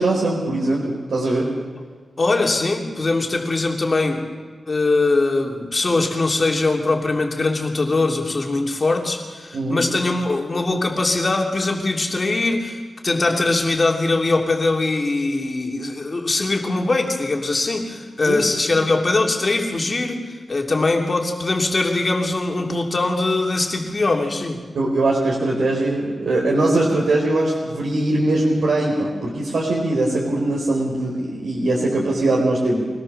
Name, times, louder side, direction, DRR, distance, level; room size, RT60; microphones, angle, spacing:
voice 1, 0.0-1.5 9.5-9.8 18.3-18.4 24.7-32.8, right 2 dB, 85° right, -3 dB, 4.2 m, -21 dB
voice 2, 2.2-4.3 4.7-20.2 20.5-24.6, left 2 dB, 40° left, 2 dB, 3.0 m, -21 dB
24.0 x 18.5 x 6.7 m, 1.5 s
wide cardioid pair, 105°, 0 cm